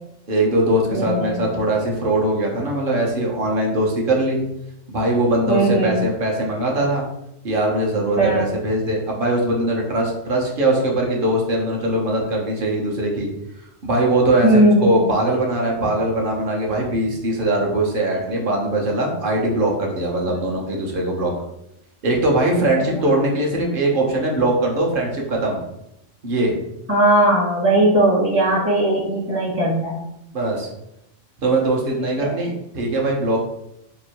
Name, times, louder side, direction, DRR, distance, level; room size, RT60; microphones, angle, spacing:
voice 1, 0.3-4.4 4.9-7.0 7.4-13.3 13.8-21.3 22.0-25.6 26.2-26.5 30.3-30.7 31.4-33.4, right 1 dB, 50° right, -1 dB, 1.0 m, -21 dB
voice 2, 0.9-1.5 5.5-6.0 8.2-8.4 14.4-14.9 20.2-20.4 26.9-30.0 32.2-32.4, right 1 dB, 15° right, -6 dB, 0.7 m, -18 dB
3.0 x 2.6 x 4.4 m, 0.81 s
omnidirectional pair, 1.3 m